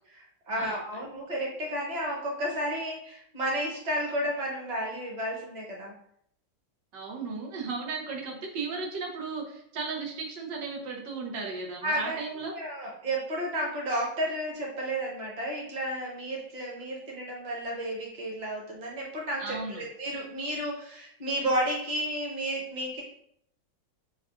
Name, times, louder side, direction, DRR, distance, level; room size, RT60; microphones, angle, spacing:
voice 1, 0.1-5.9 11.8-23.0, right 1 dB, 30° right, -3 dB, 1.0 m, -32 dB
voice 2, 6.9-12.5 19.4-19.8, right 4 dB, 90° right, 0 dB, 1.6 m, -35 dB
7.0 x 2.5 x 2.4 m, 0.69 s
omnidirectional pair, 1.8 m